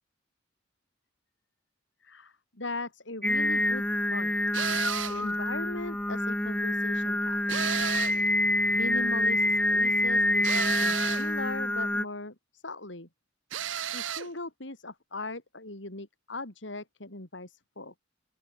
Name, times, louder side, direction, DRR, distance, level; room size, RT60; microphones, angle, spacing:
voice 1, 2.0-4.4 5.1-7.8 8.7-13.1 13.9-18.0, left 2 dB, 70° left, 4.3 m, -39 dB
Singing, 3.2-12.0, left 1 dB, 5° left, 0.3 m, -27 dB
sound 1, 4.5-5.3 7.5-8.3 10.4-11.3 13.5-14.3, right 9 dB, 85° right, 1.0 m, -32 dB
open air
head